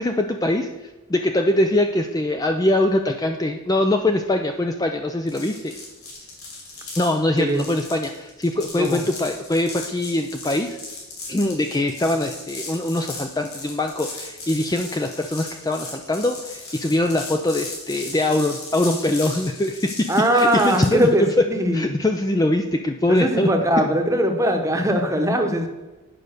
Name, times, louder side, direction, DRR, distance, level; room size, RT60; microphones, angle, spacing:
voice 1, 0.0-5.7 7.0-10.8 11.3-20.1 20.3-21.4 21.7-23.5, left 1 dB, 15° left, 5 dB, 0.4 m, -22 dB
sound 1, 5.3-21.1, left 3 dB, 85° left, 3.4 m, -37 dB
voice 2, 20.1-21.2 21.5-21.8 23.1-25.7, equal, 15° right, 4 dB, 1.0 m, -20 dB
10.0 x 5.3 x 6.4 m, 1.1 s
head